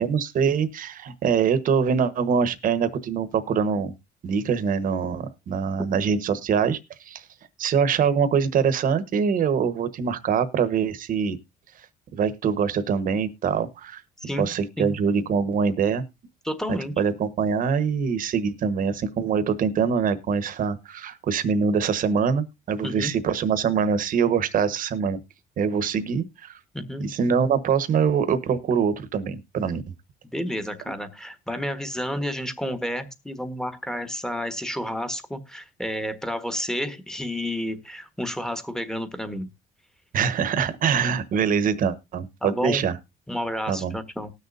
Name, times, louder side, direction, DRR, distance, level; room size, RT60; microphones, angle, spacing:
voice 1, 0.1-3.9 4.2-7.2 7.6-11.4 12.1-14.0 14.4-16.0 17.0-25.2 25.6-26.6 27.0-29.8 40.1-42.9 43.7-44.0, right 6 dB, 55° right, 1.2 m, -24 dB
voice 2, 16.4-16.9 22.8-23.1 26.7-27.1 30.3-39.5 42.4-42.8 43.3-44.3, equal, 5° left, 1.4 m, -30 dB
19.5 x 6.6 x 2.6 m
cardioid pair, 110°, 17 cm